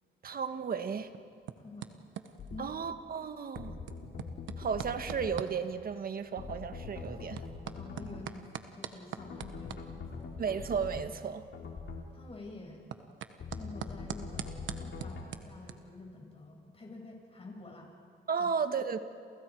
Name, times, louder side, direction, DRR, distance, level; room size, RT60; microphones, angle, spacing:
voice 1, 0.2-1.1 2.6-3.7 4.6-7.4 10.4-11.4 18.3-19.0, right 6 dB, 50° right, 9 dB, 1.5 m, -34 dB
sound 1, 0.6-15.7, right 9 dB, 75° right, 1.3 m, -46 dB
voice 2, 1.6-2.0 2.5-2.7 7.2-7.3 7.7-9.8 12.1-12.8 13.5-17.9 18.4-18.5, left 2 dB, 30° left, 1 dB, 5.8 m, -48 dB
sound 2, 2.4-2.6 3.5-5.4 6.4-8.2 9.2-11.1 11.5-12.1 13.4-15.3, left 4 dB, 65° left, 3.9 m, -43 dB
30.0 x 28.0 x 4.8 m, 2.3 s
cardioid pair, 90°, 20 cm